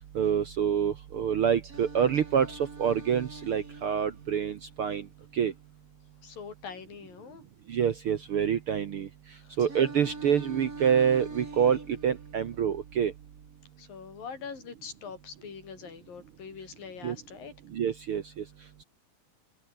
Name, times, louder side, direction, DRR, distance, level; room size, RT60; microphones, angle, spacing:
voice 1, 0.1-5.1 5.3-5.5 7.7-9.1 9.6-13.1 17.0-17.2 17.7-18.4, right 8 dB, 60° right, 1.5 m, -27 dB
Singing, 1.6-5.6 9.6-13.6, right 3 dB, 25° right, 4.1 m, -45 dB
voice 2, 6.2-7.4 9.3-9.6 13.8-17.5, left 6 dB, 90° left, 6.2 m, -43 dB
omnidirectional pair, 3.9 m